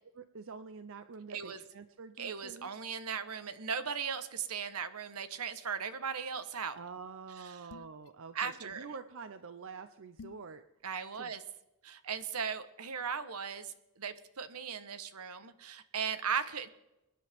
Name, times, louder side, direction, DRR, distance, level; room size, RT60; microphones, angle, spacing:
voice 1, 0.2-2.7 6.7-10.6 11.2-11.3, right 5 dB, 60° right, 10 dB, 0.7 m, -47 dB
voice 2, 1.3-1.6 2.2-6.8 7.3-7.7 8.3-8.9 10.8-11.4 11.8-16.7, right 6 dB, 80° right, 12 dB, 1.1 m, -37 dB
sound 1, 7.7-8.1 10.2-10.5, left 4 dB, 75° left, 0.6 m, -51 dB
24.5 x 10.5 x 3.6 m, 0.95 s
head